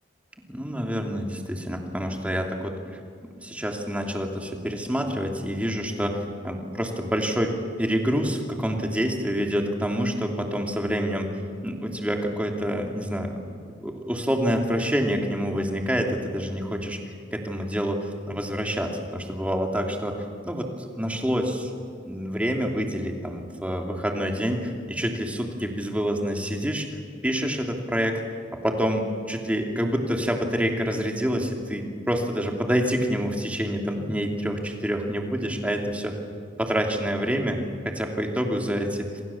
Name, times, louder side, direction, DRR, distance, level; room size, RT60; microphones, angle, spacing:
voice 1, 0.5-2.8 3.4-7.5 7.8-11.3 11.6-13.4 13.8-17.0 17.3-21.7 22.1-28.2 28.6-36.2 36.6-38.9, equal, 5° right, 2 dB, 2.9 m, -27 dB
28.0 x 26.0 x 7.2 m, 2.2 s
head